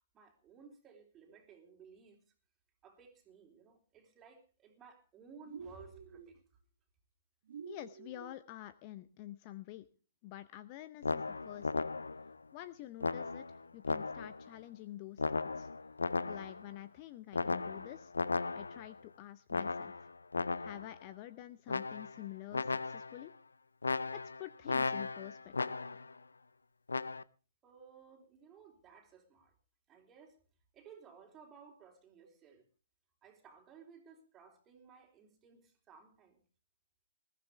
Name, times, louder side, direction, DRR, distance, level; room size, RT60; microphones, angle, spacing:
voice 1, 0.1-2.2 2.8-6.4 27.6-29.5 29.9-30.4 30.7-32.7 33.2-36.4, right 6 dB, 15° right, 3.6 m, -58 dB
sound 1, 5.4-6.4 7.5-8.4, right 6 dB, 50° right, 1.1 m, -49 dB
voice 2, 7.7-9.9 10.2-11.8 12.5-15.7 16.2-18.1 18.6-20.1 20.6-23.3 24.1-25.8, left 14 dB, 30° left, 0.7 m, -48 dB
sound 2, 11.0-12.3 13.0-14.5 15.2-16.7 17.3-18.9 19.5-20.9 21.7-22.3 22.5-23.3 23.8-26.1 26.9-27.2, left 3 dB, 75° left, 0.6 m, -36 dB
21.0 x 13.5 x 3.4 m
figure-of-eight pair, 125°, 0 cm